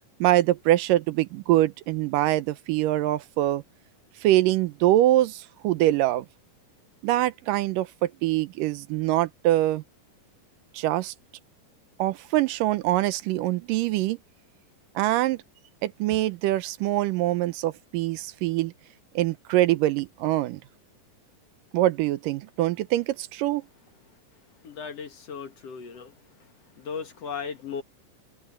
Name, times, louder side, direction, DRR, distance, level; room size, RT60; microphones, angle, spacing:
voice 1, 0.2-3.6 4.2-6.3 7.0-9.8 10.7-11.1 12.0-14.2 15.0-15.4 15.8-18.7 19.2-20.6 21.7-23.6, right 15 dB, 80° right, 2.4 m, -24 dB
voice 2, 24.6-26.1 26.8-27.8, left 6 dB, 55° left, 2.4 m, -36 dB
open air
omnidirectional pair, 3.9 m